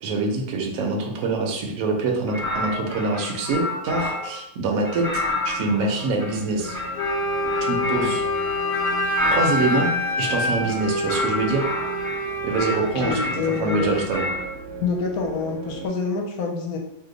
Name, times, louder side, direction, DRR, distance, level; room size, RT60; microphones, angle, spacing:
voice 1, 0.0-6.8 7.6-8.2 9.2-9.9 10.2-11.7 12.4-13.3 13.6-14.3, right 3 dB, 65° right, 1 dB, 0.9 m, -25 dB
sound 1, 2.3-4.4 4.8-10.0 10.6-12.2 12.5-14.5, left 2 dB, 20° left, 0.6 m, -30 dB
sound 2, 4.8-15.9, right 1 dB, 85° right, 1.2 m, -39 dB
Wind instrument woodwind instrument, 6.9-12.8, left 1 dB, 55° left, 1.0 m, -26 dB
voice 2, 12.8-14.0 14.8-16.8, left 5 dB, 75° left, 2 dB, 1.0 m, -26 dB
2.8 x 2.1 x 3.8 m, 0.80 s
omnidirectional pair, 1.7 m